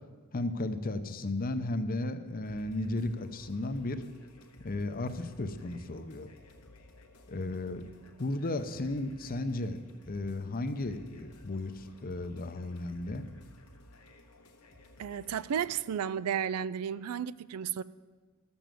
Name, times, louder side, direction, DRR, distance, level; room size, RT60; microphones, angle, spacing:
voice 1, 0.3-4.0 4.6-6.3 7.3-7.9 8.2-9.8 10.1-13.3, left 2 dB, 40° left, 10 dB, 0.7 m, -34 dB
sound 1, 2.4-15.6, left 1 dB, 85° left, 1.3 m, -57 dB
voice 2, 15.0-17.8, right 8 dB, 85° right, 18 dB, 0.4 m, -33 dB
12.5 x 7.1 x 7.6 m, 1.4 s
head